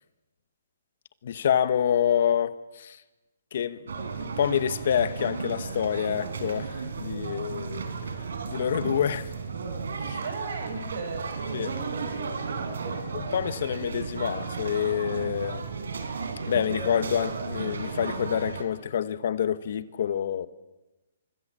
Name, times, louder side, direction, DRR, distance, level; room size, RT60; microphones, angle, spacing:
voice 1, 1.2-3.0 3.5-3.9 4.2-7.9 8.5-9.3 10.0-10.2 11.5-11.7 13.1-15.6 16.5-20.5, left 9 dB, 45° left, 1.1 m, -27 dB
sound 1, 3.9-18.6, right 5 dB, 75° right, 4.3 m, -34 dB
voice 2, 10.2-13.1, right 4 dB, 55° right, 6.1 m, -37 dB
25.0 x 24.5 x 7.5 m
hypercardioid pair, 170°, 0 cm